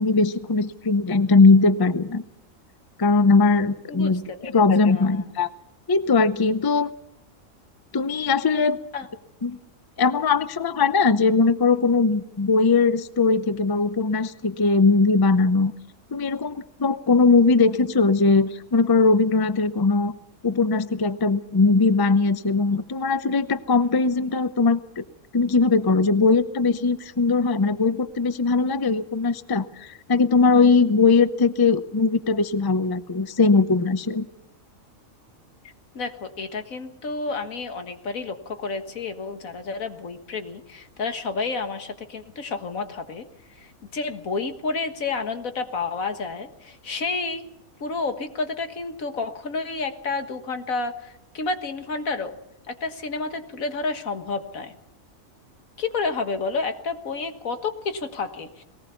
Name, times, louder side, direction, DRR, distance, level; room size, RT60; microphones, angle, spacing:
voice 1, 0.0-2.2 3.0-5.5 5.9-6.9 7.9-8.8 9.4-9.6 10.0-15.7 16.1-20.1 20.4-25.0 25.3-34.3, left 4 dB, 25° left, 13 dB, 0.5 m, -20 dB
voice 2, 3.9-4.6 4.9-5.3 8.9-9.1 35.9-47.4 47.8-52.3 52.7-54.7 55.8-58.6, left 4 dB, 85° left, 7 dB, 2.0 m, -30 dB
20.0 x 18.5 x 7.0 m, 0.82 s
omnidirectional pair, 1.4 m